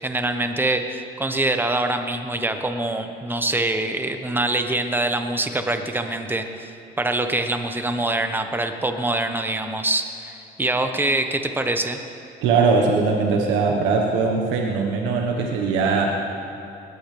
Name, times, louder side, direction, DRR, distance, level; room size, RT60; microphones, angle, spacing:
voice 1, 0.0-12.0, right 2 dB, 10° right, 7 dB, 1.1 m, -24 dB
voice 2, 12.4-16.1, right 4 dB, 80° right, 0 dB, 1.4 m, -20 dB
20.0 x 15.0 x 3.4 m, 2.7 s
supercardioid pair, 85°, 19 cm